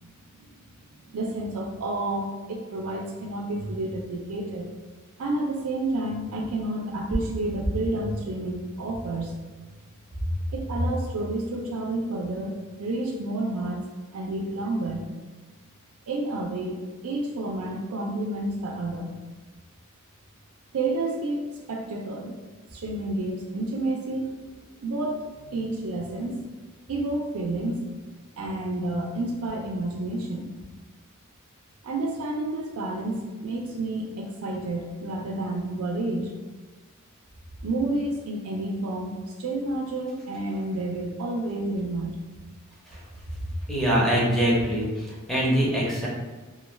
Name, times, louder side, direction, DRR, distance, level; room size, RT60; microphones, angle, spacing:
voice 1, 1.1-4.7 5.2-9.4 10.5-12.5 12.8-13.8 14.1-15.1 16.1-19.2 20.7-22.3 22.7-24.4 24.8-26.4 26.9-27.8 28.4-30.5 31.8-36.3 37.6-42.2, right 2 dB, 90° right, 0 dB, 0.4 m, -30 dB
voice 2, 43.7-46.1, equal, ahead, -6 dB, 0.6 m, -23 dB
2.2 x 2.2 x 3.1 m, 1.3 s
head